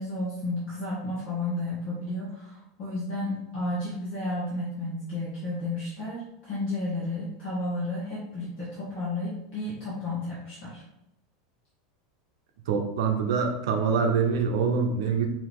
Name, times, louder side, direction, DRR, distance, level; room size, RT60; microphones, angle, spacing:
voice 1, 0.0-10.8, left 2 dB, 30° left, -8 dB, 1.3 m, -32 dB
voice 2, 12.7-15.3, right 5 dB, 75° right, 4 dB, 0.8 m, -25 dB
4.8 x 2.9 x 3.7 m, 0.84 s
supercardioid pair, 180°, 2 cm